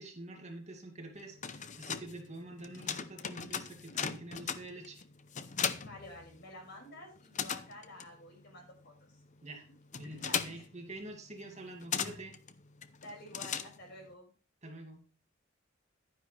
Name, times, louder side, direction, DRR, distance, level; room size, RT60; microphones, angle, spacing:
voice 1, 0.0-5.0 9.4-9.6 10.0-12.4 14.6-15.0, right 2 dB, 35° right, 2 dB, 2.4 m, -47 dB
sound 1, 1.2-6.8 7.0-14.1, left 7 dB, 40° left, 0.7 m, -39 dB
voice 2, 5.8-9.2 10.1-10.7 13.0-14.3, left 1 dB, 55° left, 0 dB, 5.8 m, -50 dB
11.5 x 10.0 x 3.3 m, 0.38 s
head